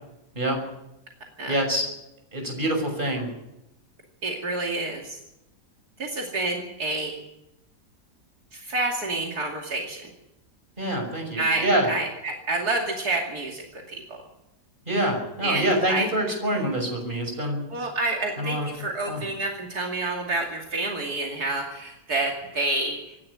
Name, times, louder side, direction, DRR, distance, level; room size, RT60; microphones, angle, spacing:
voice 1, 1.5-1.8 2.3-3.3 10.8-11.9 14.9-17.7 18.4-18.7 19.1-19.2, right 1 dB, 30° right, 3 dB, 6.4 m, -26 dB
voice 2, 4.2-5.2 6.0-7.1 8.5-10.1 11.4-14.2 15.4-16.1 17.7-23.1, right 2 dB, 70° right, 0 dB, 3.1 m, -28 dB
26.0 x 12.0 x 9.9 m, 0.90 s
omnidirectional pair, 1.8 m